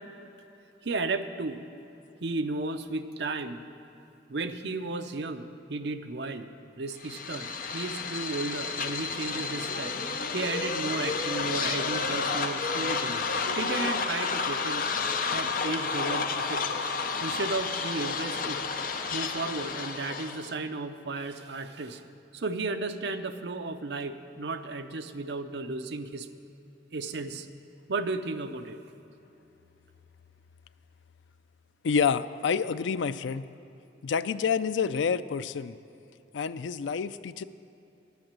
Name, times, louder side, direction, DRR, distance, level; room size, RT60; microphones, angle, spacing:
voice 1, 0.8-1.6 2.2-3.7 4.3-10.0 10.3-13.2 13.6-16.8 17.2-18.6 19.1-22.0 22.3-26.3 26.9-27.5 27.9-28.8, right 3 dB, 65° right, 8 dB, 0.6 m, -34 dB
sound 1, 7.0-20.5, left 4 dB, 50° left, 0.7 m, -31 dB
voice 2, 31.8-33.5 34.0-35.8 36.3-37.4, left 6 dB, 80° left, 14 dB, 0.4 m, -28 dB
10.5 x 9.7 x 7.5 m, 2.9 s
head